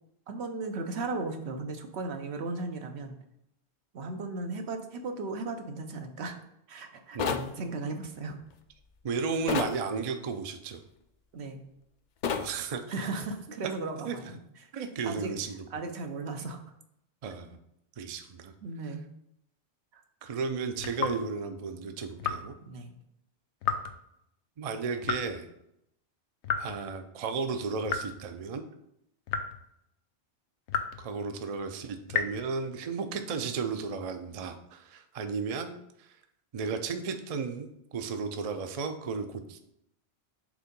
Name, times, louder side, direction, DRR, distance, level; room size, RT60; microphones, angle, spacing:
voice 1, 0.3-3.2 3.9-6.3 6.7-8.4 11.3-11.6 12.9-15.3 15.7-16.6 18.6-19.0 19.9-20.0 22.6-22.9, right 3 dB, 75° right, 5 dB, 1.0 m, -36 dB
voice 2, 7.1-7.5 9.0-10.8 12.4-12.8 14.0-14.4 14.7-15.7 17.2-17.6 18.0-18.5 20.2-22.5 24.6-25.5 26.6-28.6 31.0-35.7 36.0-36.1 36.5-39.6, right 5 dB, 45° right, 7 dB, 0.5 m, -34 dB
sound 1, 7.2-7.5 9.5-9.8 12.2-12.5, left 7 dB, 55° left, 0.5 m, -29 dB
sound 2, 20.8-21.2 22.2-22.5 23.6-24.0 25.0-25.4 26.4-26.9 27.9-28.2 29.3-29.7 30.7-31.1 32.1-32.5, left 6 dB, 85° left, 0.9 m, -32 dB
5.0 x 3.6 x 5.2 m, 0.78 s
omnidirectional pair, 1.1 m